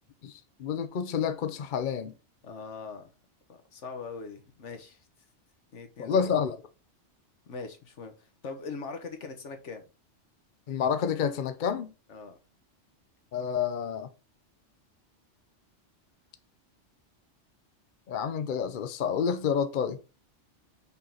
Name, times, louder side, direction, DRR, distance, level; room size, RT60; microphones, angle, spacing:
voice 1, 0.2-2.1 6.0-6.6 10.7-11.9 13.3-14.1 18.1-20.0, left 7 dB, 50° left, 0.7 m, -29 dB
voice 2, 2.4-3.1 3.5-5.1 5.7-6.4 7.5-9.9 12.1-12.4, left 4 dB, 75° left, 1.4 m, -41 dB
5.6 x 4.4 x 3.9 m
omnidirectional pair, 1.2 m